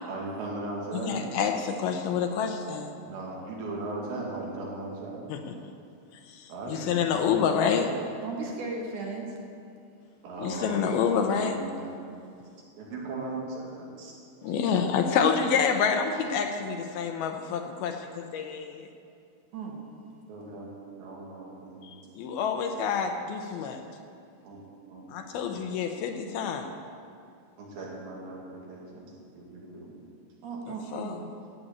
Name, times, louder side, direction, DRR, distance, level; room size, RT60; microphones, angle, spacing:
voice 1, 0.0-1.3 3.0-5.3 6.5-7.9 10.2-11.9 12.8-14.1 20.3-20.7 21.0-21.9 24.4-24.6 24.9-25.6 27.6-30.0, right 2 dB, 90° right, -3 dB, 4.7 m, -38 dB
voice 2, 0.9-2.9 5.3-5.5 6.3-7.9 10.4-11.6 14.4-18.9 21.8-23.8 25.1-26.7 30.9-31.2, left 6 dB, 75° left, 4 dB, 2.5 m, -28 dB
voice 3, 8.2-9.4 19.5-19.9 23.9-24.0 30.4-31.3, right 3 dB, 55° right, 0 dB, 2.7 m, -36 dB
14.0 x 8.4 x 8.6 m, 2.4 s
omnidirectional pair, 4.8 m